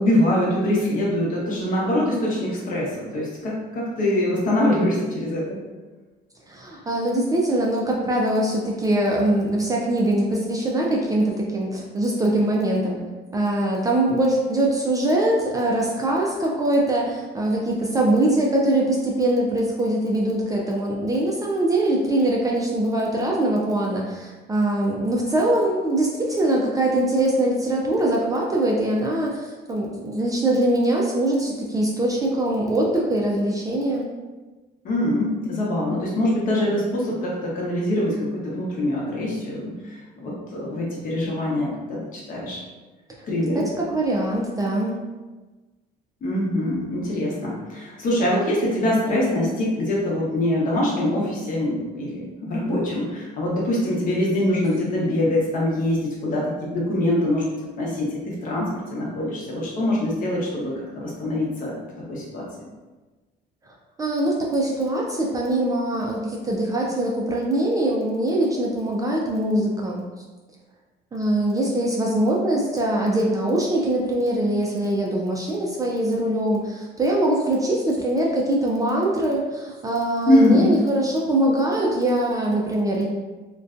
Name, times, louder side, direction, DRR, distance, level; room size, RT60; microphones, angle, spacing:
voice 1, 0.0-5.6 34.8-42.6 43.3-43.7 46.2-57.4 57.8-61.8 62.1-62.4 80.2-80.7, left 1 dB, 50° left, -4 dB, 0.8 m, -23 dB
voice 2, 6.5-13.0 13.3-34.1 43.5-45.0 64.0-70.1 71.1-83.1, right 1 dB, 20° right, -2 dB, 0.3 m, -22 dB
2.5 x 2.2 x 2.4 m, 1.2 s
cardioid pair, 120°, 18 cm